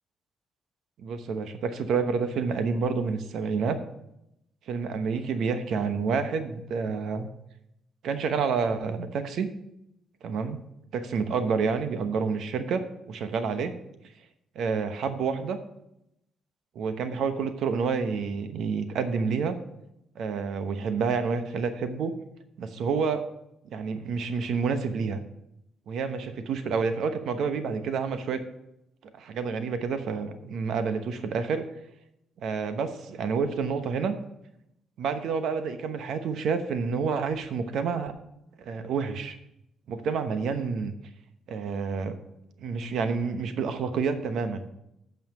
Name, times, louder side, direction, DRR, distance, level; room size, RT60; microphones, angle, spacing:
voice 1, 1.0-3.8 4.7-7.3 8.0-9.5 10.2-10.6 10.9-13.7 14.5-15.6 16.7-19.5 20.1-22.1 22.6-23.2 23.7-25.2 25.9-28.4 29.2-31.6 32.4-34.2 35.0-38.1 38.6-39.4 39.9-40.9 41.5-42.2 42.6-44.7, right 5 dB, 75° right, 9 dB, 0.9 m, -29 dB
8.9 x 5.6 x 5.5 m, 0.80 s
cardioid pair, 90°, 0 cm